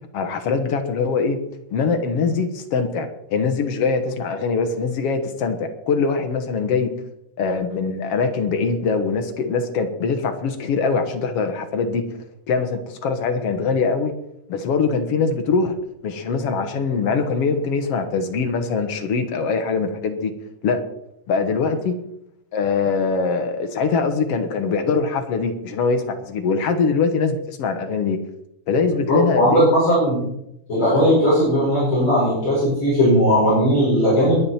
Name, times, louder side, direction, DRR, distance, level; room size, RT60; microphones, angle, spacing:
voice 1, 0.1-1.4 1.7-6.9 7.4-12.0 12.5-14.1 14.5-15.7 16.0-20.3 20.6-20.8 21.3-22.0 22.5-28.2 28.7-29.7, left 4 dB, 55° left, 6 dB, 2.0 m, -22 dB
voice 2, 29.1-30.2 30.7-34.4, equal, 35° left, -8 dB, 6.6 m, -17 dB
21.5 x 8.7 x 4.4 m, 0.81 s
omnidirectional pair, 3.7 m